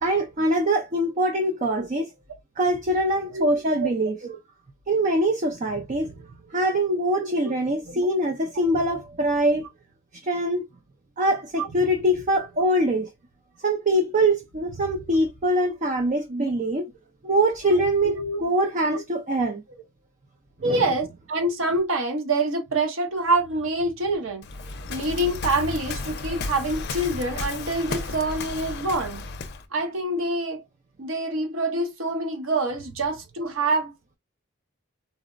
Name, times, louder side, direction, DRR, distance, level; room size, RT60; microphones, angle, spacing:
voice 1, 0.0-2.1 2.6-4.1 4.9-6.1 6.5-9.6 10.2-10.6 11.2-13.1 13.6-16.9 17.2-19.6 20.6-20.8, right 1 dB, 35° right, 0.5 m, -23 dB
voice 2, 3.3-3.9 4.2-4.4 7.1-7.5 7.9-8.1 11.6-11.7 16.3-16.5 17.6-17.7 18.0-18.4 18.9-19.0 20.6-24.5 24.9-29.3 29.7-30.6 31.0-33.9, right 2 dB, 70° right, 0.8 m, -26 dB
Waves surf, 24.4-29.7, left 3 dB, 50° left, 0.5 m, -33 dB
4.0 x 2.0 x 2.4 m
head